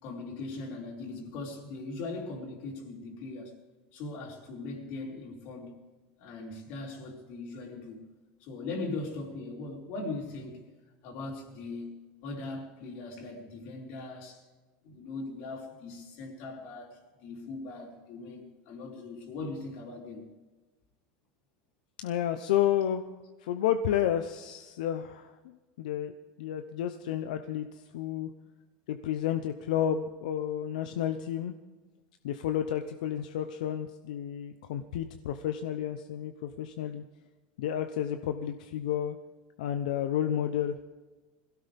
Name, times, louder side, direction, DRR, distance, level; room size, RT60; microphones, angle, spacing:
voice 1, 0.0-3.5 3.9-5.7 6.2-8.0 8.4-10.6 11.0-11.9 12.2-14.4 14.8-20.2, left 3 dB, 55° left, 0 dB, 4.1 m, -40 dB
voice 2, 22.0-23.0 23.4-26.1 26.4-28.3 28.9-31.5 32.2-37.0 37.6-39.2 39.6-40.8, left 10 dB, 85° left, 8 dB, 0.8 m, -31 dB
22.0 x 16.5 x 3.6 m, 1.2 s
supercardioid pair, 155°, 4 cm